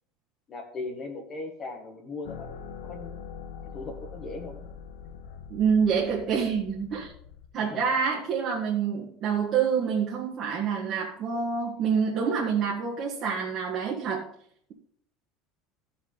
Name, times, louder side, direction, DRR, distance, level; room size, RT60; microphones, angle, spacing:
voice 1, 0.5-2.5 2.8-3.2 3.7-4.7 7.6-7.8 8.1-8.2, left 3 dB, 25° left, 1.8 m, -38 dB
sound 1, 2.2-7.5, left 7 dB, 80° left, 1.3 m, -43 dB
voice 2, 5.5-7.1 7.5-14.3, right 6 dB, 35° right, 1.7 m, -27 dB
15.0 x 6.1 x 4.0 m
cardioid pair, 165°, 0 cm